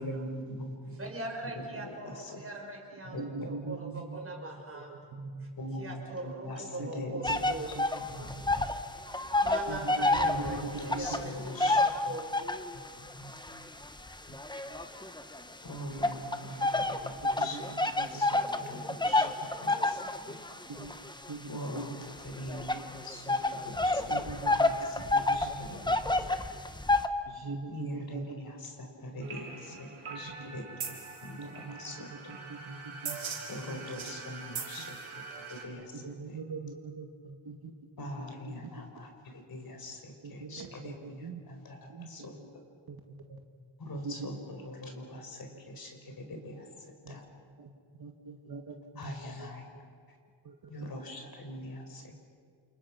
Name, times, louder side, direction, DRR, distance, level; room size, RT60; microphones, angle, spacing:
voice 1, 0.0-1.1 1.5-2.4 3.0-3.5 5.6-7.2 8.1-8.4 10.2-11.8 12.1-12.2 12.7-12.8 13.1-13.3 14.3-14.4 15.6-16.6 16.9-19.3 19.6-20.0 20.2-20.4 21.5-25.0 25.3-26.4 27.7-29.9 30.1-32.3 33.5-35.2 35.5-36.0 36.3-36.4 38.0-42.4 43.8-46.7 47.1-47.2 49.0-49.7 50.7-52.2, left 1 dB, 45° left, 3 dB, 4.8 m, -42 dB
voice 2, 0.9-4.9 5.8-7.7 9.4-12.4, right 2 dB, 25° right, 1 dB, 5.8 m, -41 dB
voice 3, 3.1-4.2 4.7-5.5 6.8-8.3 8.6-8.7 9.7-11.3 16.4-16.7 17.4-18.6 18.9-19.0 20.7-20.9 21.3-22.1 22.5-22.8 24.1-25.9 26.2-26.7 27.3-28.4 29.1-29.5 30.1-30.6 31.4-33.2 33.7-34.0 34.8-34.9 35.9-37.7 38.0-38.1 38.5-38.7 40.2-41.4 41.9-42.3 42.9-43.4 44.0-44.4 47.0-47.2 47.6-47.7 48.0-48.8 49.2-49.5 50.4-50.7, right 4 dB, 50° right, 3 dB, 2.2 m, -42 dB
sound 1, 7.2-8.8 9.1-12.7 13.3-15.4 16.0-27.1, left 2 dB, 10° left, 1.2 m, -29 dB
sound 2, 29.2-35.6, right 5 dB, 75° right, 5.7 m, -42 dB
29.0 x 28.5 x 6.0 m, 2.1 s
wide cardioid pair, 115°, 49 cm